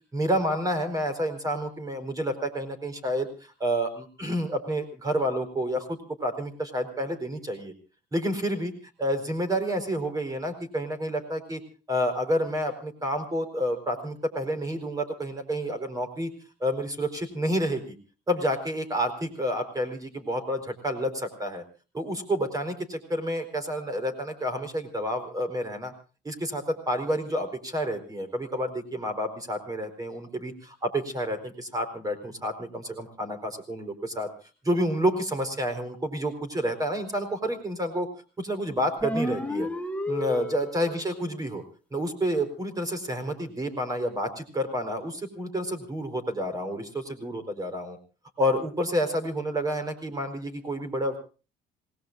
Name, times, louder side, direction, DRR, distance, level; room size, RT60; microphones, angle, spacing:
voice 1, 0.1-7.7 8.1-8.7 9.0-11.6 11.9-16.3 16.6-18.0 18.3-21.6 21.9-25.9 26.2-34.3 34.6-38.1 38.4-39.7 40.1-41.6 41.9-48.0 48.4-51.2, equal, 20° right, 7 dB, 4.6 m, -29 dB
sound 1, 39.0-41.0, left 1 dB, 10° left, 1.4 m, -31 dB
27.0 x 19.0 x 2.6 m, 0.35 s
cardioid pair, 110°, 17 cm